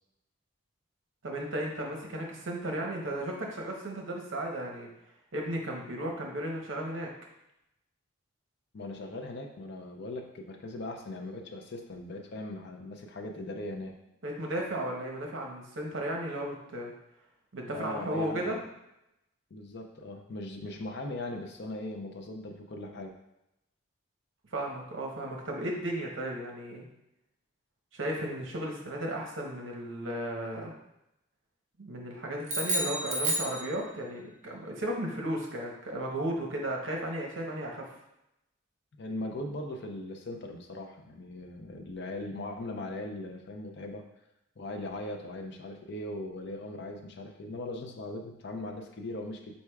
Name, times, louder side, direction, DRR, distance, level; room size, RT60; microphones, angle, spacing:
voice 1, 1.2-4.9 5.3-7.1 14.2-16.9 17.5-18.6 24.5-26.8 27.9-30.7 31.8-37.9, right 1 dB, 65° right, 0 dB, 0.8 m, -34 dB
voice 2, 8.7-13.9 17.7-18.7 19.5-23.1 39.0-44.0 44.6-49.5, left 2 dB, 55° left, 3 dB, 0.5 m, -39 dB
sound 1, 32.4-34.2, right 1 dB, 35° right, 0.8 m, -31 dB
4.6 x 4.1 x 2.3 m, 0.87 s
head